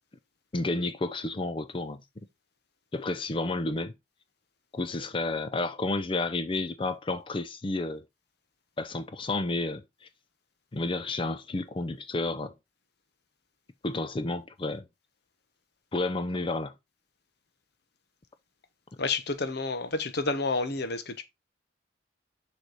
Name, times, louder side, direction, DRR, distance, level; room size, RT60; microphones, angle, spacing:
voice 1, 0.5-2.0 2.9-3.9 4.7-8.0 8.8-10.1 10.7-12.5 13.8-14.9 15.9-16.7, left 2 dB, 25° left, 0.5 m, -31 dB
voice 2, 19.0-21.2, left 3 dB, 60° left, 0.9 m, -30 dB
6.6 x 3.2 x 4.7 m
head